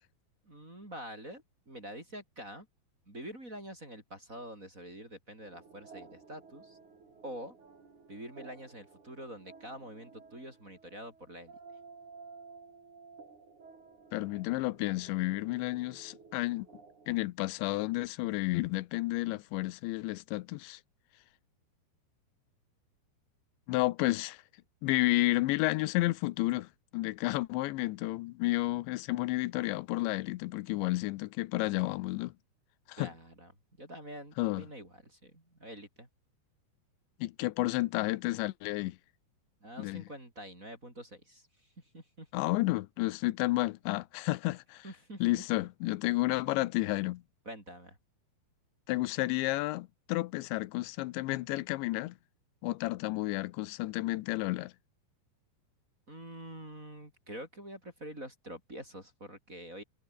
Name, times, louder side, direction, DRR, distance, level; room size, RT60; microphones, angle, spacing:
voice 1, 0.4-2.7 3.1-6.8 7.2-7.6 8.1-11.6 33.0-33.5 33.8-36.1 39.6-42.3 44.8-45.4 47.4-48.0 56.1-59.8, equal, 15° right, 6.4 m, -46 dB
sound 1, 5.4-17.2, right 4 dB, 40° right, 6.5 m, -54 dB
voice 2, 14.1-16.7 17.1-20.8 23.7-24.4 24.8-32.3 32.9-33.1 34.4-34.6 37.2-39.0 39.8-40.0 42.3-44.8 45.2-47.2 48.9-52.2 52.6-54.7, left 19 dB, 85° left, 3.0 m, -31 dB
omnidirectional pair, 5.2 m